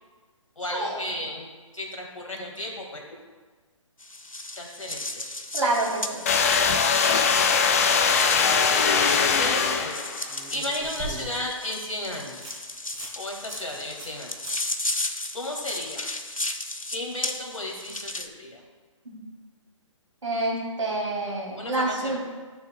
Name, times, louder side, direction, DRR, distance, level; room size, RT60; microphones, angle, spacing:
voice 1, 0.6-1.5 1.7-3.1 4.6-5.2 6.6-7.5 8.7-10.0 10.5-12.6 13.2-14.3 15.3-16.1 16.9-18.6 21.6-22.2, left 1 dB, 75° left, 1 dB, 2.0 m, -34 dB
sound 1, 4.0-18.3, left 2 dB, 90° left, 0.7 m, -35 dB
voice 2, 5.5-6.2 19.1-19.2 20.2-22.2, right 2 dB, 65° right, -2 dB, 2.7 m, -27 dB
sound 2, 6.3-10.3, left 5 dB, 25° left, 0.4 m, -21 dB
sound 3, 8.8-8.9 10.3-11.6 12.0-12.1 12.4-12.5 12.9-13.2 13.5-13.6 14.0-14.2 14.4-14.6 14.9-15.0 18.1-18.2, right 4 dB, 30° right, 2.1 m, -40 dB
12.5 x 6.8 x 2.3 m, 1.4 s
figure-of-eight pair, 135°, 17 cm